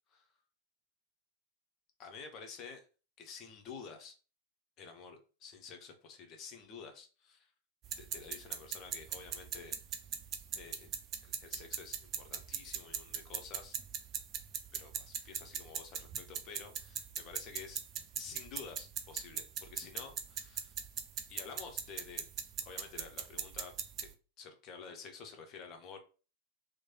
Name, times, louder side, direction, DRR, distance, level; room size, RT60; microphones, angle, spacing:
voice 1, 2.0-2.9 3.2-4.1 4.8-7.5 8.0-9.8 10.5-10.9 11.2-13.8 14.7-17.8 18.2-20.7 21.3-22.3 22.6-24.1 24.4-26.0, left 5 dB, 35° left, 4 dB, 0.8 m, -50 dB
sound 1, 7.8-24.1, right 8 dB, 35° right, 0.4 m, -41 dB
3.1 x 2.1 x 4.0 m, 0.36 s
figure-of-eight pair, 90°, 0 cm